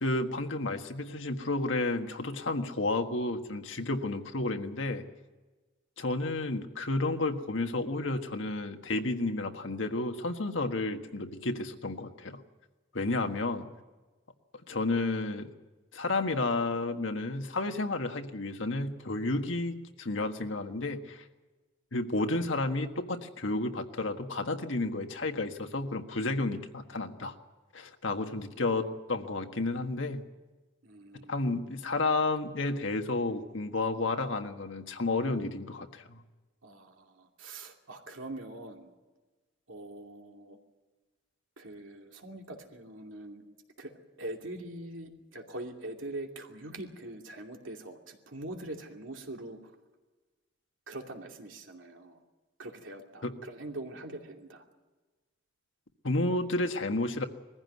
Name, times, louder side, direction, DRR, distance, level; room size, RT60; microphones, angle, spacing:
voice 1, 0.0-5.1 6.0-12.4 12.9-13.7 14.7-15.5 15.9-21.2 21.9-27.3 27.7-30.2 31.3-36.2 53.2-53.3 56.0-57.2, left 2 dB, 80° left, 6 dB, 1.6 m, -31 dB
voice 2, 28.4-28.8 30.8-31.6 36.6-38.9 39.7-40.6 41.6-43.4 43.8-43.9 44.2-49.6 50.9-52.2 52.6-54.6, right 2 dB, 85° right, 2 dB, 2.7 m, -43 dB
21.5 x 15.0 x 9.5 m, 1.2 s
head